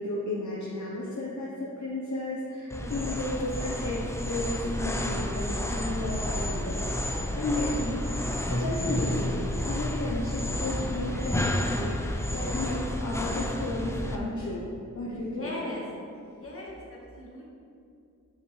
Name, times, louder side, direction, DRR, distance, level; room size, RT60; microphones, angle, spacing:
voice 1, 0.0-9.3 9.6-14.7 14.9-15.6, left 2 dB, 60° left, -5 dB, 0.9 m, -33 dB
sound 1, 2.7-14.1, left 1 dB, 10° left, 0.5 m, -31 dB
voice 2, 15.1-15.8 16.1-17.5, left 1 dB, 45° left, -4 dB, 1.6 m, -39 dB
6.3 x 5.8 x 3.2 m, 2.4 s
wide cardioid pair, 60°, 32 cm